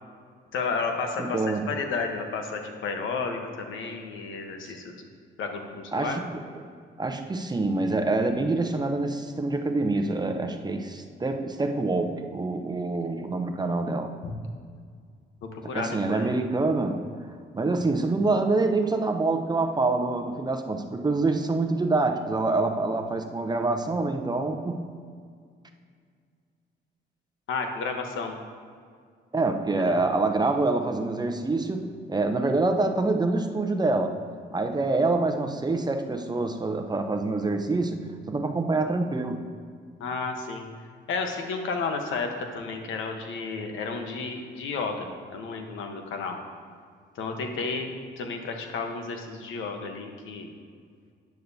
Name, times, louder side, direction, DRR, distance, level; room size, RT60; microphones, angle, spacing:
voice 1, 0.5-4.9 5.4-6.2 14.2-14.3 15.4-16.3 27.5-28.4 29.7-30.0 40.0-40.7 41.1-46.4 47.1-47.9 48.2-50.5, left 4 dB, 80° left, 4 dB, 1.1 m, -32 dB
voice 2, 1.2-1.7 4.7-4.8 5.9-6.3 6.5-6.7 7.0-14.1 15.6-17.1 17.5-24.8 29.3-34.2 34.5-39.5, right 3 dB, 20° right, 5 dB, 0.7 m, -26 dB
11.0 x 9.3 x 2.8 m, 2.1 s
cardioid pair, 90°, 20 cm